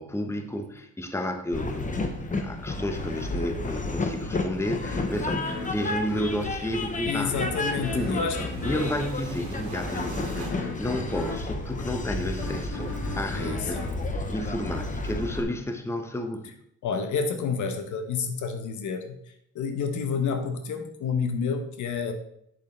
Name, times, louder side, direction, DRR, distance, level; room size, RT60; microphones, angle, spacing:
voice 1, 0.0-7.5 7.7-8.3 8.6-16.5, left 1 dB, 10° left, 6 dB, 0.9 m, -32 dB
Train, 1.5-15.4, left 2 dB, 25° left, 1.0 m, -32 dB
sound 1, 4.8-15.0, left 2 dB, 55° left, 2.4 m, -38 dB
sound 2, 5.2-10.5, right 2 dB, 65° right, 1.9 m, -40 dB
voice 2, 7.1-8.4 13.3-13.7 16.8-19.1 19.5-22.1, left 5 dB, 75° left, 7 dB, 1.1 m, -29 dB
8.1 x 6.7 x 3.3 m, 0.73 s
cardioid pair, 90°, 30 cm